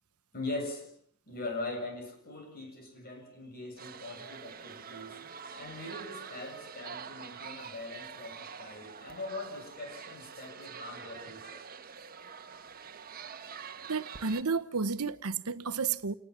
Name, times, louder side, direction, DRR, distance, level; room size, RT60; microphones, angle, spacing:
voice 1, 0.3-0.9 1.3-5.2 5.6-11.6, left 2 dB, 45° left, 7.6 m, -41 dB
sound 1, 3.8-14.4, right 6 dB, 45° right, 1.4 m, -46 dB
voice 2, 13.9-16.1, right 5 dB, 80° right, 1.0 m, -31 dB
28.5 x 19.5 x 7.3 m
head